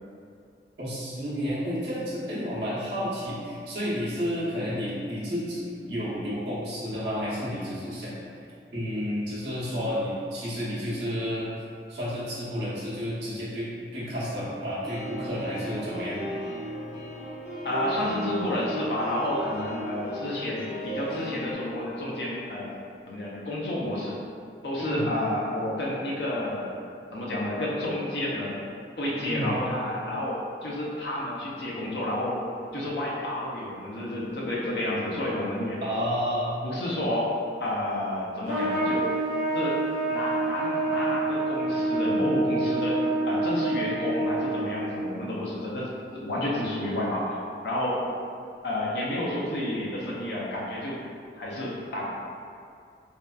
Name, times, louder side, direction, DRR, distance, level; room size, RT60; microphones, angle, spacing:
voice 1, 0.8-8.1 8.7-11.5 11.9-16.2 24.8-25.1 29.2-29.5 35.8-36.5, equal, 70° right, -9 dB, 0.8 m, -31 dB
sound 1, 14.8-21.5, equal, 40° left, 0.8 m, -36 dB
voice 2, 17.6-22.7 23.1-24.2 24.6-26.7 27.1-28.6 29.0-32.4 32.7-35.8 36.6-37.3 37.6-39.1 39.5-39.8 40.1-43.0 43.3-47.4 47.6-48.0 48.6-51.0 51.4-52.1, left 1 dB, 65° left, -4 dB, 0.5 m, -30 dB
Trumpet, 38.4-45.0, right 2 dB, 40° right, 0.9 m, -27 dB
2.7 x 2.2 x 2.3 m, 2.3 s
head